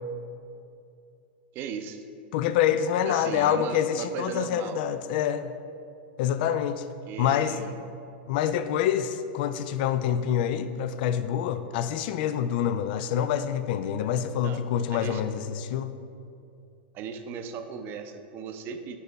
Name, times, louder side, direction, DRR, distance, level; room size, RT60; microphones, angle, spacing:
voice 1, 1.5-2.0 3.0-4.8 7.1-7.8 14.4-14.6 14.9-15.2 16.9-19.0, right 6 dB, 40° right, 8 dB, 0.5 m, -36 dB
voice 2, 2.3-5.5 6.2-6.8 7.2-7.6 8.3-15.9, left 9 dB, 60° left, 11 dB, 0.3 m, -26 dB
6.3 x 5.4 x 4.0 m, 2.6 s
hypercardioid pair, 115°, 6 cm